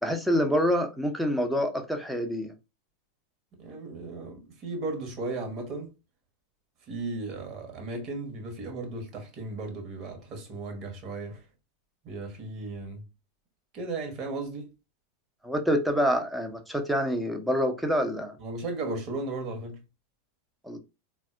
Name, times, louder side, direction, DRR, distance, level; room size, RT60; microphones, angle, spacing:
voice 1, 0.0-2.5 15.4-18.4 20.6-20.8, equal, ahead, 0.6 m, -26 dB
voice 2, 3.6-5.9 6.9-11.4 12.0-13.0 13.7-14.7 18.4-19.8, right 2 dB, 35° right, 1.0 m, -35 dB
4.0 x 2.3 x 2.4 m
figure-of-eight pair, 90°, 0 cm